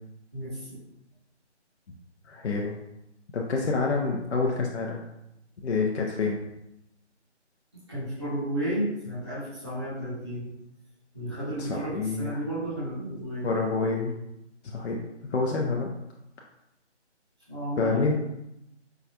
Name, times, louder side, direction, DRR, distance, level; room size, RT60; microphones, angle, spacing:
voice 1, 0.3-0.8 7.9-10.5 11.1-13.5 17.5-18.1, right 1 dB, 25° right, -12 dB, 0.7 m, -32 dB
voice 2, 2.2-2.7 3.3-5.0 5.6-6.4 11.6-12.4 13.4-14.1 14.7-15.0 15.3-15.9 17.8-18.1, left 4 dB, 70° left, -1 dB, 0.5 m, -27 dB
4.6 x 2.2 x 2.7 m, 0.86 s
figure-of-eight pair, 175°, 35 cm